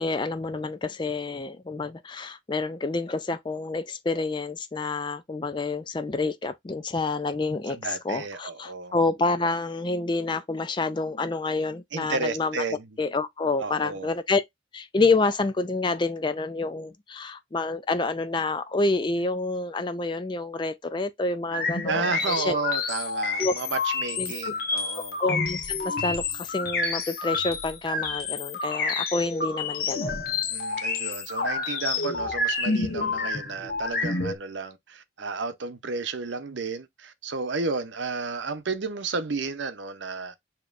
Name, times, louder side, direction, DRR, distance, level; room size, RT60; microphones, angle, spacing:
voice 1, 0.0-12.6 13.0-14.4 14.7-22.5 23.4-23.5 24.2-24.5 24.9-30.2, left 3 dB, 25° left, 0.3 m, -28 dB
voice 2, 7.7-8.9 11.9-12.9 13.6-14.1 21.9-25.2 30.5-40.3, right 4 dB, 75° right, 0.7 m, -32 dB
sound 1, 21.5-34.4, left 3 dB, 50° left, 0.9 m, -29 dB
7.1 x 2.9 x 2.4 m
head